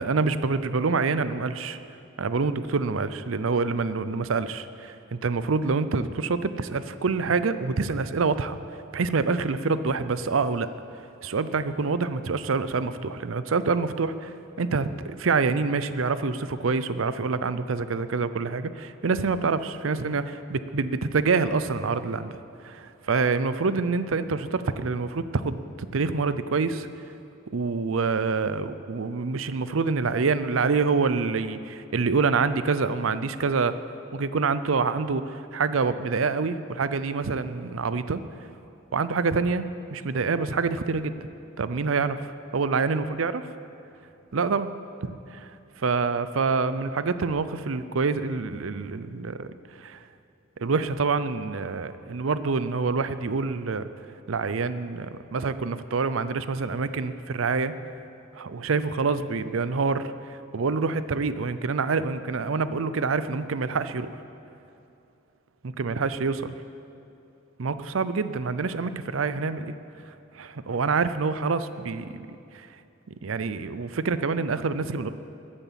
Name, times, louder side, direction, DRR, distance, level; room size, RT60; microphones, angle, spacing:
voice 1, 0.0-1.8 2.2-8.6 8.9-10.7 11.2-22.4 22.6-26.9 27.5-33.7 34.1-38.2 38.9-41.2 41.6-42.2 42.5-43.3 44.3-44.7 45.0-45.5 45.8-50.0 50.6-53.9 54.3-57.7 58.3-64.1 65.6-66.5 67.6-69.7 70.3-72.3 72.5-72.7 73.1-75.1, right 4 dB, 85° right, 13 dB, 0.6 m, -26 dB
14.0 x 9.8 x 7.5 m, 2.6 s
head